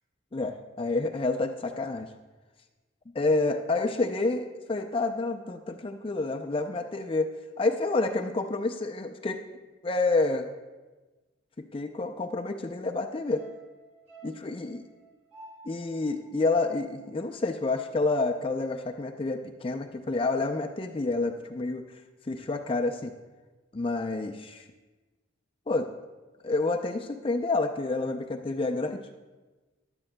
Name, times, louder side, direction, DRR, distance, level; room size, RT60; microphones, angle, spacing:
voice 1, 0.3-2.1 3.1-7.3 7.6-9.4 9.8-10.5 11.7-13.4 14.2-14.8 15.7-21.9 22.3-23.1 23.7-24.6 25.7-25.9 26.4-29.0, left 3 dB, 25° left, 5 dB, 0.4 m, -29 dB
sound 1, 13.3-17.7 18.0-18.1, right 3 dB, 35° right, 3.2 m, -53 dB
15.0 x 11.0 x 2.2 m, 1.2 s
head